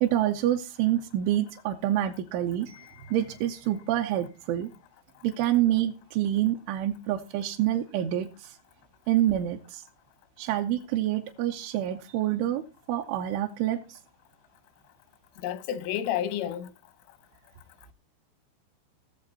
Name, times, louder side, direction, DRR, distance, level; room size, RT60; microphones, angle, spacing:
voice 1, 0.0-4.7 5.2-8.6 9.1-9.8 10.4-12.6 12.9-14.0, right 12 dB, 85° right, 3.2 m, -27 dB
voice 2, 15.4-16.7, left 10 dB, 90° left, 3.5 m, -30 dB
17.5 x 7.0 x 4.0 m
omnidirectional pair, 5.5 m